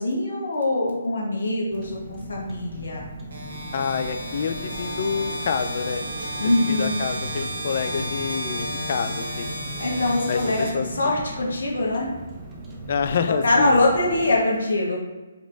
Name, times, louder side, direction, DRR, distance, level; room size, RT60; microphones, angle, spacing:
voice 1, 0.0-3.1 6.4-7.0 9.8-12.1 13.4-15.0, left 2 dB, 60° left, -2 dB, 1.3 m, -23 dB
Car, 1.7-14.3, right 1 dB, 15° right, 0.7 m, -39 dB
sound 1, 3.3-11.3, equal, 60° right, 1.2 m, -33 dB
voice 2, 3.7-6.0 6.7-9.5 10.3-10.9 12.9-13.8, left 6 dB, 45° left, 8 dB, 0.3 m, -27 dB
sound 2, 4.3-11.2, equal, 80° right, 1.4 m, -40 dB
4.9 x 3.5 x 2.6 m, 1.2 s
figure-of-eight pair, 135°, 0 cm